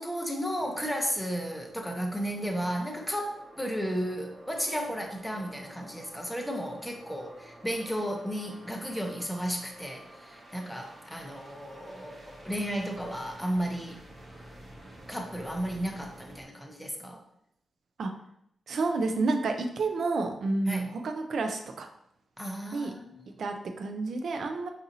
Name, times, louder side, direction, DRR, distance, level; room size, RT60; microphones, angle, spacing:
voice 1, 0.0-14.0 15.1-17.2 20.7-20.9 22.4-23.2, equal, 5° left, 2 dB, 0.7 m, -34 dB
sound 1, 0.6-16.5, right 1 dB, 40° right, 0.9 m, -50 dB
voice 2, 18.7-21.9 22.7-22.9 23.4-24.7, right 3 dB, 70° right, 5 dB, 0.4 m, -30 dB
4.0 x 2.6 x 2.7 m, 0.74 s
cardioid pair, 70°, 0 cm